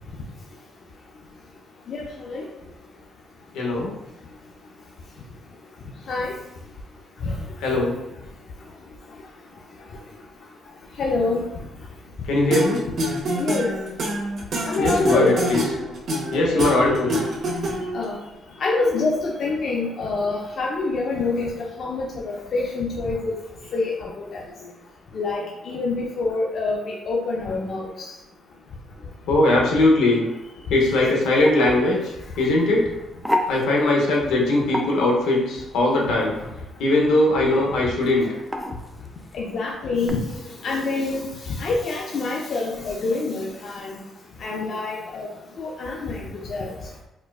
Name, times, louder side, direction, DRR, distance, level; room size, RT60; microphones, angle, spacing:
voice 1, 1.9-2.4 6.1-6.3 7.2-7.3 11.0-11.4 13.4-13.7 14.7-15.3 16.5-16.6 17.9-18.2 18.6-21.5 21.8-23.3 23.7-23.9 24.3-24.4 25.1-27.9 39.3-40.2 40.6-41.2 41.6-44.0 44.4-45.3 45.6-46.2 46.5-46.7, left 3 dB, 60° left, -2 dB, 0.4 m, -25 dB
voice 2, 3.5-3.9 7.6-8.0 12.3-12.8 14.8-15.6 16.3-17.2 24.6-24.7 29.3-30.3 30.7-32.9 33.5-36.4 36.8-38.3, left 2 dB, 85° left, -2 dB, 0.8 m, -20 dB
sound 1, 12.5-18.0, right 1 dB, 60° right, 0.8 m, -26 dB
sound 2, 30.8-40.1, left 1 dB, ahead, 0.4 m, -33 dB
4.2 x 2.2 x 2.3 m, 0.99 s
cardioid pair, 90°, 0 cm